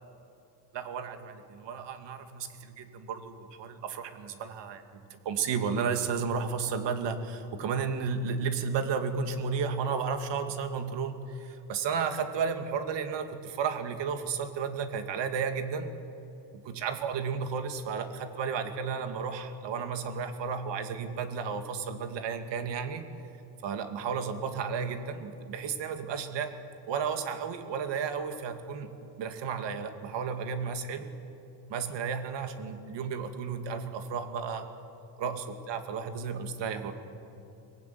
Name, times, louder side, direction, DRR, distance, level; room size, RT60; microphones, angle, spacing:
voice 1, 0.7-15.9 16.5-23.1 23.6-26.5 26.9-28.9 29.2-31.1 31.7-34.7 35.2-36.9, right 6 dB, 70° right, 7 dB, 2.5 m, -33 dB
24.0 x 19.5 x 9.4 m, 2.8 s
cardioid pair, 150°, 44 cm